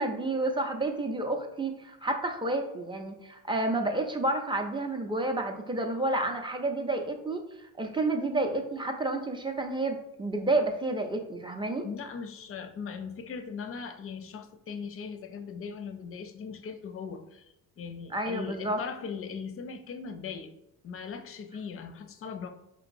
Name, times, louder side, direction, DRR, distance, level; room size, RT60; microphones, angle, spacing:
voice 1, 0.0-7.4 7.8-11.9 18.1-18.8, right 2 dB, 10° right, 4 dB, 0.6 m, -30 dB
voice 2, 11.8-17.5 17.8-20.5 20.8-22.5, left 6 dB, 35° left, 8 dB, 0.5 m, -39 dB
4.8 x 2.9 x 2.6 m, 0.85 s
supercardioid pair, 80°, 41 cm